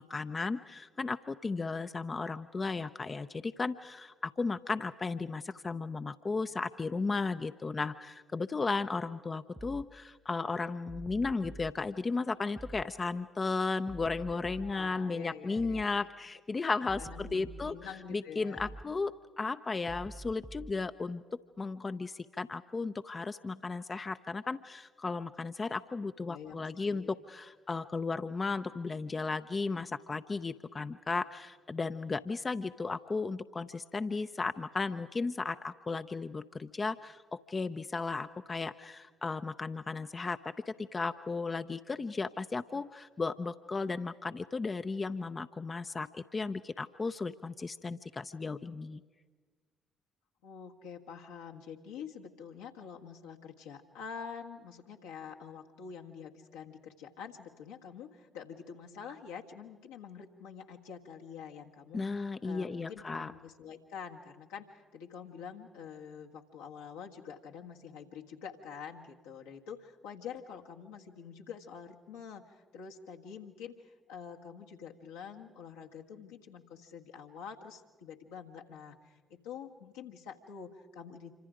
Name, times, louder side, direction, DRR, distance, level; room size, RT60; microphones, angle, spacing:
voice 1, 0.0-17.7 18.1-21.2 21.6-40.4 40.7-49.0 61.9-63.3, left 4 dB, 35° left, 9 dB, 0.7 m, -35 dB
sound 1, 9.6-9.9 10.9-11.7 12.6-12.9 13.9-14.8 15.6-15.9 16.9-17.8 18.6-18.9 19.9-20.8, right 2 dB, 20° right, 0.7 m, -46 dB
voice 2, 14.6-16.1 17.0-18.8 26.2-27.1 50.4-81.3, left 7 dB, 80° left, 0 dB, 1.6 m, -47 dB
26.5 x 25.5 x 5.0 m, 1.4 s
figure-of-eight pair, 45°, 0 cm